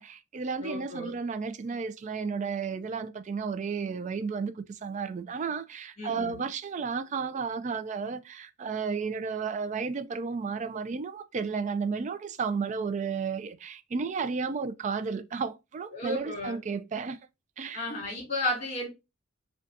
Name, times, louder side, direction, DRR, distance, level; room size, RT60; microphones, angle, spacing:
voice 1, 0.0-17.2 17.6-17.8, right 5 dB, 35° right, 0.3 m, -33 dB
voice 2, 0.6-1.2 6.0-6.4 15.9-16.6 17.7-18.9, left 1 dB, 35° left, 2.3 m, -33 dB
5.1 x 2.3 x 2.5 m
head